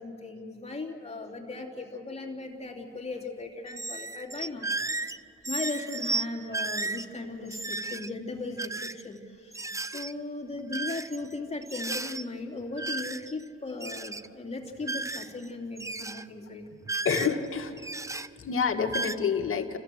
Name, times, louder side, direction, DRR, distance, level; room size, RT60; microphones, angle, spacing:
voice 1, 0.0-4.7 5.5-16.7, left 3 dB, 20° left, 1 dB, 3.0 m, -37 dB
sound 1, 3.7-5.2 5.4-6.3 6.5-7.1 7.5-8.1 8.6-9.0 9.5-10.1 10.7-11.4 11.6-12.2 12.8-13.4 13.7-14.3 14.8-15.5 15.8-16.3 16.8-17.5 17.8-18.3 18.9-19.2, right 3 dB, 10° right, 0.5 m, -34 dB
voice 2, 17.0-17.8 18.4-19.8, left 6 dB, 45° left, 5 dB, 1.8 m, -28 dB
30.0 x 15.0 x 7.8 m, 2.5 s
cardioid pair, 90°, 30 cm